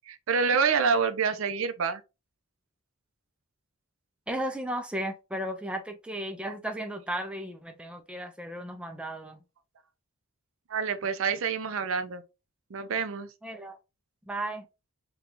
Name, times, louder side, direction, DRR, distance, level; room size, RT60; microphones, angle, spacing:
voice 1, 0.1-2.0 10.7-12.2 12.7-13.3, right 5 dB, 65° right, 0.5 m, -27 dB
voice 2, 4.3-9.4 13.4-13.8 14.3-14.7, right 1 dB, 5° right, 0.3 m, -35 dB
3.9 x 2.3 x 2.9 m
head